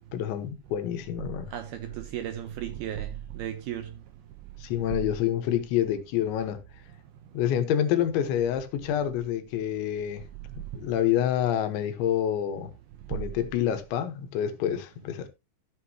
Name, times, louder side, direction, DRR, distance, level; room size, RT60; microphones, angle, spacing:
voice 1, 0.1-1.5 4.6-6.6 7.3-10.2 10.6-12.7 13.1-15.3, left 10 dB, 75° left, 3.4 m, -27 dB
voice 2, 1.5-3.9, right 11 dB, 80° right, 2.4 m, -35 dB
14.0 x 8.1 x 2.8 m
omnidirectional pair, 5.4 m